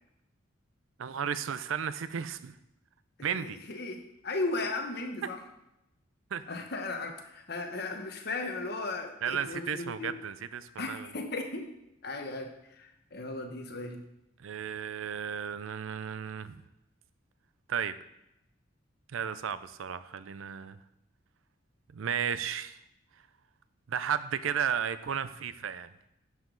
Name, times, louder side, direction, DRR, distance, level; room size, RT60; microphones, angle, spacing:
voice 1, 1.0-2.6 3.2-3.6 6.3-6.4 9.2-11.1 14.4-16.6 17.7-17.9 19.1-20.8 21.9-22.8 23.9-25.9, right 8 dB, 80° right, 14 dB, 0.5 m, -34 dB
voice 2, 3.2-5.4 6.5-10.1 10.8-11.7 12.0-14.0, left 2 dB, 50° left, 4 dB, 1.0 m, -36 dB
11.0 x 5.0 x 3.8 m, 0.86 s
head